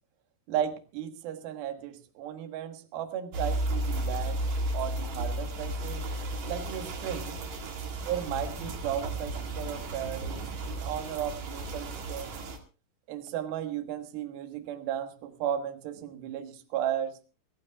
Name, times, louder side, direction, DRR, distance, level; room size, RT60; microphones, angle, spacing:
voice 1, 0.5-4.5 4.7-6.0 6.4-7.4 8.1-12.3 13.1-17.1, right 10 dB, 65° right, 6 dB, 2.7 m, -35 dB
sound 1, 3.3-12.6, right 1 dB, 45° right, 2.6 m, -34 dB
26.0 x 15.0 x 2.4 m, 0.33 s
omnidirectional pair, 5.8 m